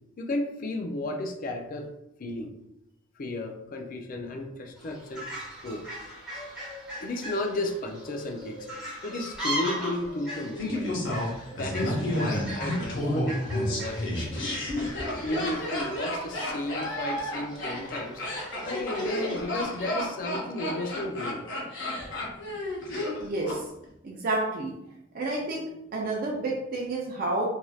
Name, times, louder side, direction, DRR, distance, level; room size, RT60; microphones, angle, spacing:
voice 1, 0.2-1.9 2.2-2.5 3.2-5.3 5.6-5.9 7.0-8.7 9.0-10.9 11.5-14.7 15.2-18.2 18.6-21.5, left 1 dB, 45° left, 4 dB, 0.4 m, -33 dB
Fowl, 4.8-19.6, equal, 5° right, 0.9 m, -40 dB
Laughter, 10.6-23.6 23.8-23.9, left 1 dB, 65° left, 0.8 m, -31 dB
voice 2, 23.2-23.6 24.0-24.7 25.1-27.4, right 2 dB, 45° right, -3 dB, 0.5 m, -30 dB
3.1 x 2.6 x 2.3 m, 0.85 s
head